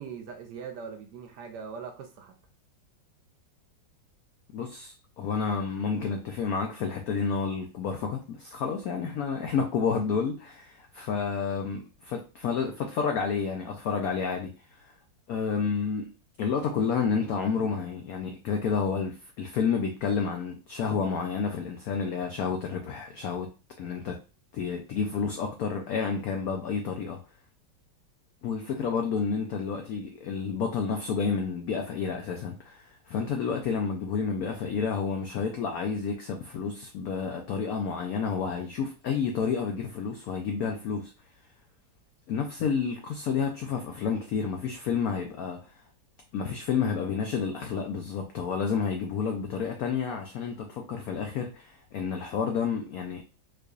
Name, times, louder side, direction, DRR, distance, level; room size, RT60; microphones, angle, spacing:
voice 1, 0.0-2.4, right 6 dB, 75° right, 1.0 m, -41 dB
voice 2, 4.5-14.9 15.3-16.1 16.4-23.5 23.8-24.1 24.5-27.2 28.4-41.1 42.3-45.7 46.3-53.2, left 6 dB, 85° left, 0.7 m, -30 dB
4.7 x 2.4 x 2.4 m
omnidirectional pair, 2.1 m